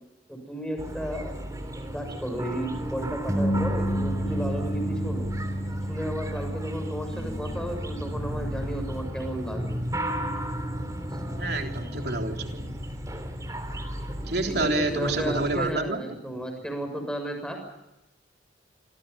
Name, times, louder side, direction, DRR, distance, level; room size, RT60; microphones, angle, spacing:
voice 1, 0.3-1.3 1.9-5.3 5.9-9.8 14.5-17.6, right 1 dB, 5° left, 4 dB, 6.8 m, -33 dB
sound 1, 0.8-15.7, equal, 20° right, 3.2 m, -31 dB
voice 2, 11.4-12.7 14.3-16.0, right 2 dB, 60° right, 3 dB, 3.6 m, -28 dB
28.5 x 25.5 x 5.5 m, 0.91 s
head